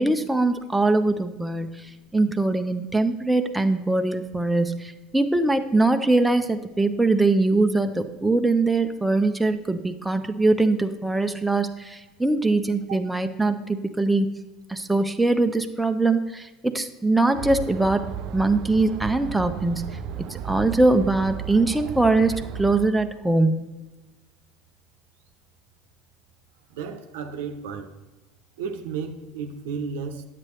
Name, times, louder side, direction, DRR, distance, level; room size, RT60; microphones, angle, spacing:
voice 1, 0.0-1.8 2.1-14.3 14.7-18.0 18.3-19.9 20.2-22.3 22.6-23.6, right 2 dB, 5° right, 6 dB, 0.7 m, -22 dB
sound 1, 17.3-22.9, right 9 dB, 60° right, 0.4 m, -34 dB
voice 2, 26.7-28.0 28.6-30.2, right 6 dB, 75° right, 7 dB, 0.8 m, -33 dB
9.8 x 7.6 x 3.2 m, 1.2 s
hypercardioid pair, 75°, 0 cm